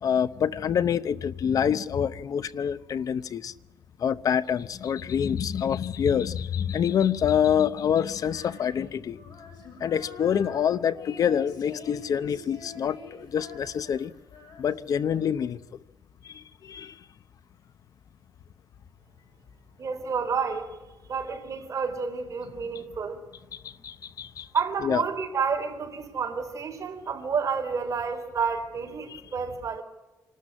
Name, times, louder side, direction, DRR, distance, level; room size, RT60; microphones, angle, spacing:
voice 1, 0.0-3.5 4.0-9.2 9.8-14.1 14.6-15.6 16.2-17.0 23.5-24.5 24.8-25.0 29.1-29.2, left 8 dB, 60° left, 0.8 m, -26 dB
Female singing, 8.2-15.5, left 3 dB, 75° left, 7.1 m, -46 dB
voice 2, 19.8-20.8 21.1-23.2 24.5-29.8, right 5 dB, 50° right, 4.3 m, -30 dB
26.0 x 13.0 x 9.9 m
cardioid pair, 125°, 7 cm